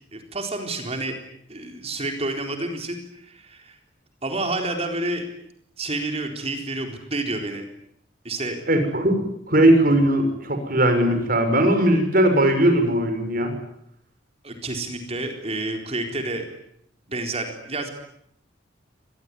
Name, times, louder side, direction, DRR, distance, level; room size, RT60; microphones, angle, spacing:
voice 1, 0.1-1.2 1.5-3.7 4.2-5.3 5.8-7.6 8.2-8.6 14.4-16.4 17.1-17.9, right 2 dB, 35° right, 5 dB, 4.1 m, -29 dB
voice 2, 8.7-9.2 9.5-13.5, right 1 dB, 50° right, 7 dB, 6.3 m, -19 dB
25.5 x 20.5 x 9.9 m, 0.73 s
head